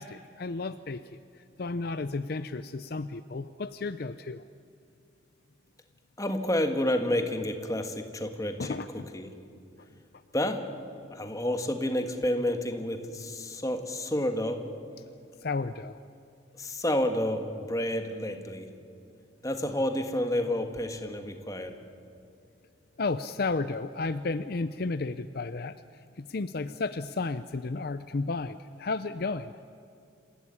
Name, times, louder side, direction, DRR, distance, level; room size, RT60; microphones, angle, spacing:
voice 1, 0.0-4.4 8.6-9.1 15.4-16.0 23.0-29.6, left 3 dB, 50° left, 12 dB, 0.5 m, -33 dB
voice 2, 6.2-9.3 10.3-10.6 11.1-14.6 16.5-18.7 19.4-21.8, left 1 dB, 15° left, 6 dB, 1.7 m, -30 dB
27.5 x 15.5 x 9.7 m, 2.5 s
head